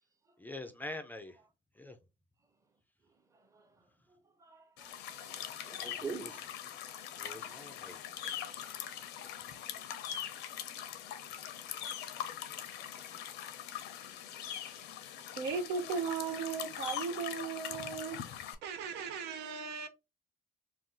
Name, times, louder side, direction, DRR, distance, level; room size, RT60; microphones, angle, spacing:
voice 1, 0.4-1.4 1.8-2.0 6.0-6.4 7.1-8.0, left 2 dB, 10° left, 0.4 m, -45 dB
voice 2, 4.4-5.3 5.6-6.4 7.3-7.7, right 4 dB, 20° right, 0.7 m, -45 dB
sound 1, 4.8-18.5, left 10 dB, 85° left, 0.5 m, -42 dB
voice 3, 15.4-18.2 18.6-19.9, right 5 dB, 85° right, 0.6 m, -37 dB
2.5 x 2.3 x 3.6 m
cardioid pair, 110°, 17 cm